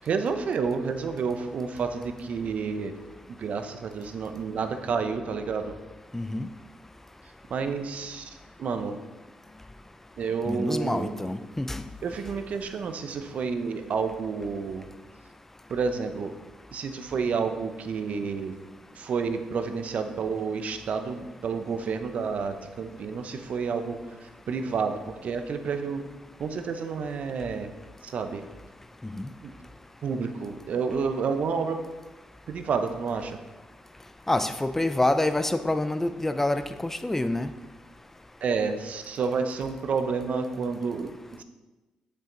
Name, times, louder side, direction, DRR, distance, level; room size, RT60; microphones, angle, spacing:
voice 1, 0.0-2.9 3.3-5.7 7.5-9.0 10.2-11.1 12.0-14.9 15.7-16.3 16.7-18.5 18.9-26.0 26.4-27.7 28.0-28.4 29.4-29.5 30.0-31.8 32.5-33.4 38.4-41.1, right 5 dB, 60° right, 8 dB, 0.7 m, -30 dB
voice 2, 6.1-6.5 10.5-11.8 29.2-29.3 34.3-37.5, left 1 dB, 10° left, 9 dB, 0.5 m, -27 dB
7.4 x 5.6 x 3.9 m, 1.2 s
supercardioid pair, 60°, 3 cm